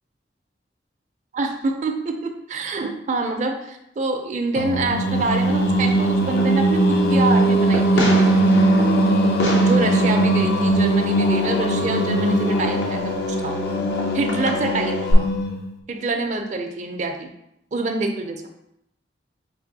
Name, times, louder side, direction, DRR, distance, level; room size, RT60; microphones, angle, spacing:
voice 1, 1.3-8.5 9.5-13.6 14.1-15.3 15.9-17.3 17.7-18.4, right 3 dB, 40° right, 4 dB, 0.4 m, -26 dB
Singing, 4.5-15.7, right 1 dB, 60° left, 0.5 m, -20 dB
Fireworks, 5.1-15.1, left 1 dB, 80° left, 0.8 m, -31 dB
3.4 x 3.0 x 3.9 m, 0.80 s
head